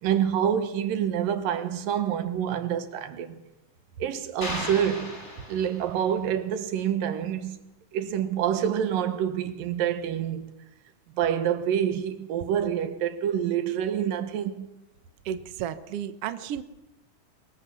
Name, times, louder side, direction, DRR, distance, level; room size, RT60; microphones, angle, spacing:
voice 1, 0.0-3.4 4.0-5.2 5.5-10.5 11.2-14.7, right 9 dB, 85° right, 3.0 m, -27 dB
sound 1, 4.4-6.1, left 1 dB, 20° left, 4.4 m, -36 dB
voice 2, 15.2-16.6, right 9 dB, 60° right, 1.7 m, -33 dB
23.0 x 20.5 x 7.0 m
omnidirectional pair, 3.9 m